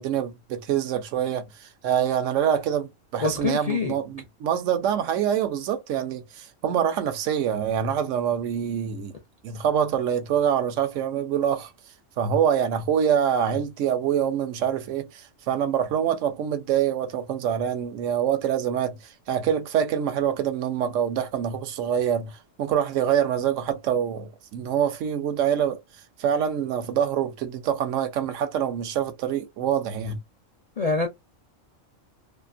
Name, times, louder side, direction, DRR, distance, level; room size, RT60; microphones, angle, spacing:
voice 1, 0.0-9.1 9.4-11.7 12.2-25.8 26.2-30.2, right 9 dB, 75° right, 0.9 m, -25 dB
voice 2, 3.2-3.9 30.8-31.1, left 4 dB, 60° left, 0.4 m, -25 dB
2.7 x 2.4 x 2.5 m
omnidirectional pair, 1.3 m